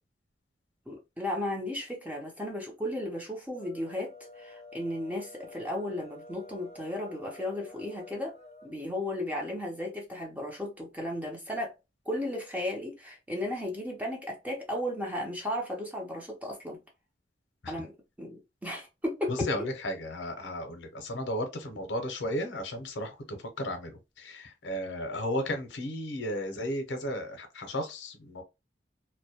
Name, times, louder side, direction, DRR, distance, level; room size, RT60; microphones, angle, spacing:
voice 1, 0.9-8.4 8.6-11.7 12.1-16.8 17.7-19.7, left 1 dB, 10° right, 0.5 m, -35 dB
sound 1, 3.4-8.7, left 3 dB, 35° left, 0.6 m, -49 dB
voice 2, 19.3-23.9 24.2-28.4, left 1 dB, 85° left, 0.6 m, -34 dB
2.2 x 2.1 x 2.7 m
head